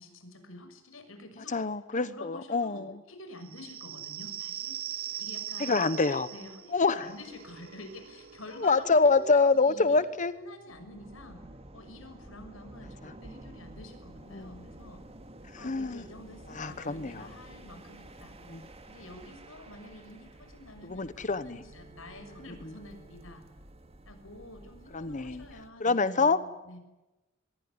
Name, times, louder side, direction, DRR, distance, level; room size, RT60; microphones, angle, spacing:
voice 1, 0.0-1.6 1.9-4.8 5.2-11.4 11.7-15.0 15.6-18.3 18.9-23.4 24.1-26.8, left 1 dB, 80° left, 7 dB, 6.4 m, -48 dB
voice 2, 1.5-2.9 5.6-6.3 6.7-7.1 8.6-10.3 14.3-14.6 15.5-16.0 16.6-17.3 18.5-18.7 20.8-21.6 24.9-25.4 25.8-26.4, left 4 dB, 40° left, 14 dB, 1.0 m, -26 dB
sound 1, 3.4-10.7, right 11 dB, 50° right, 1.0 m, -42 dB
sound 2, 10.7-25.7, right 1 dB, 30° right, 2.7 m, -50 dB
24.0 x 22.0 x 9.7 m, 1.0 s
head